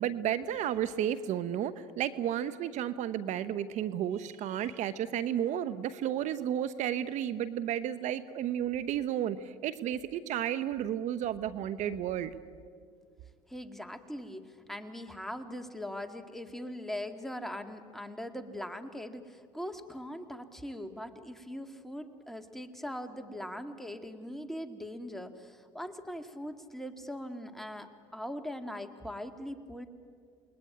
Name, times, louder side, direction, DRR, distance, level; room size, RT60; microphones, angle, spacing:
voice 1, 0.0-12.3, right 10 dB, 65° right, 13 dB, 1.0 m, -32 dB
voice 2, 13.5-29.9, equal, ahead, 6 dB, 2.2 m, -41 dB
28.5 x 20.5 x 9.5 m, 2.1 s
supercardioid pair, 80°, 14 cm